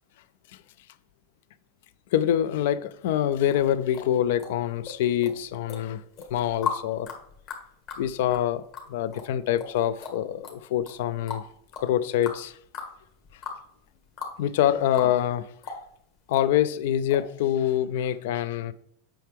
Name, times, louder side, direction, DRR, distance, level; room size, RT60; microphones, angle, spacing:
voice 1, 2.1-6.0 6.3-7.1 8.0-8.6 8.9-11.4 11.8-12.5 14.4-15.5 16.3-18.7, left 11 dB, 70° left, 0.3 m, -25 dB
sound 1, 3.5-5.0 5.2-5.8 6.2-14.4 14.7-15.4 15.6-16.5 17.1-17.3 17.6-17.7, left 6 dB, 45° left, 1.8 m, -37 dB
7.6 x 5.8 x 3.4 m
supercardioid pair, 135°, 0 cm